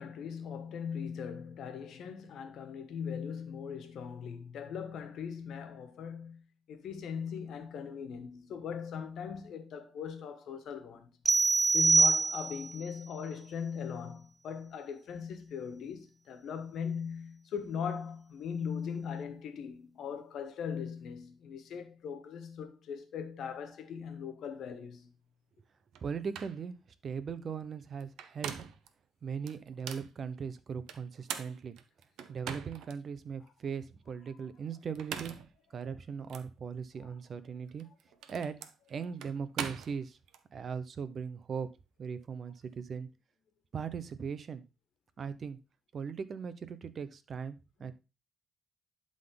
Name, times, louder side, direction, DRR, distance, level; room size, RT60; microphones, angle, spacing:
voice 1, 0.0-6.4 6.7-11.2 11.7-25.1 37.0-37.1 47.8-47.9, left 7 dB, 75° left, 1.5 m, -39 dB
sound 1, 11.2-12.8, right 3 dB, 15° right, 0.4 m, -24 dB
sound 2, 25.9-26.0 26.3-26.6 28.0-28.9 29.5-30.1 30.9-33.0 33.5-33.6 34.8-35.5 36.3-36.5 37.7-40.4, right 8 dB, 90° right, 0.8 m, -42 dB
voice 2, 26.0-26.7 27.0-28.5 29.2-31.8 32.3-35.3 35.7-37.9 38.3-38.5 38.9-40.2 40.5-41.7 42.0-43.1 43.7-44.6 45.2-45.6 45.9-47.9, right 6 dB, 50° right, 0.9 m, -39 dB
11.5 x 3.9 x 3.8 m
cardioid pair, 90°, 0 cm